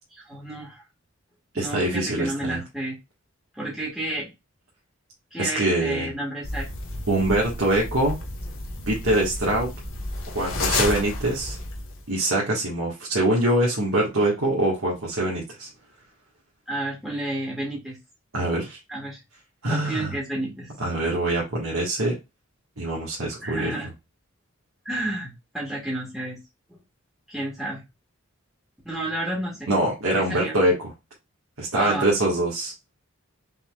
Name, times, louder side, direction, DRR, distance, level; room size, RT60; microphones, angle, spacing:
voice 1, 0.1-0.8 1.6-3.0 3.6-4.3 5.3-6.7 16.7-18.0 18.9-19.2 19.7-20.7 23.4-23.9 24.9-26.4 27.3-27.8 28.9-29.7 30.2-30.5 31.8-32.0, right 1 dB, ahead, -5 dB, 1.8 m, -31 dB
voice 2, 1.5-2.6 5.4-6.1 7.1-8.2 8.9-9.7 10.3-11.6 12.1-15.7 18.3-18.8 19.6-20.1 20.8-22.2 22.8-23.7 29.7-30.9 31.6-32.7, right 1 dB, 80° right, -4 dB, 1.8 m, -24 dB
sound 1, 6.4-12.1, left 2 dB, 75° left, 1.4 m, -31 dB
5.5 x 3.9 x 2.5 m, 0.24 s
head